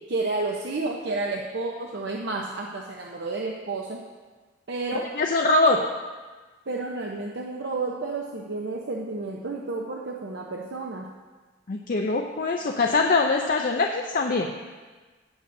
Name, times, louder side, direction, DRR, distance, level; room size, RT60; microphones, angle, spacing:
voice 1, 0.1-4.0 4.7-5.1 6.7-11.1, right 3 dB, 60° right, -1 dB, 0.8 m, -31 dB
voice 2, 4.9-5.8 11.7-14.5, left 3 dB, 45° left, 2 dB, 0.5 m, -23 dB
17.0 x 7.8 x 2.6 m, 1.4 s
head